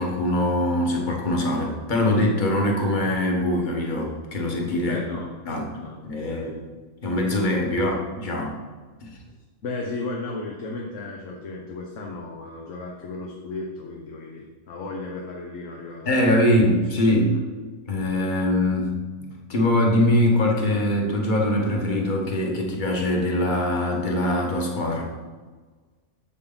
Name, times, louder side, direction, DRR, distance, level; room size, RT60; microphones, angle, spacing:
voice 1, 0.0-5.0 5.4-5.7 6.0-6.5 7.0-8.5 9.0-9.1 16.0-17.3 17.9-18.9 19.2-25.1, left 1 dB, 35° left, 0 dB, 1.4 m, -22 dB
voice 2, 4.8-5.3 5.8-6.5 9.6-16.1 16.4-16.5 16.9-17.0 17.3-17.4, left 3 dB, 60° left, 0 dB, 1.2 m, -35 dB
7.9 x 7.2 x 3.9 m, 1.4 s
omnidirectional pair, 1.6 m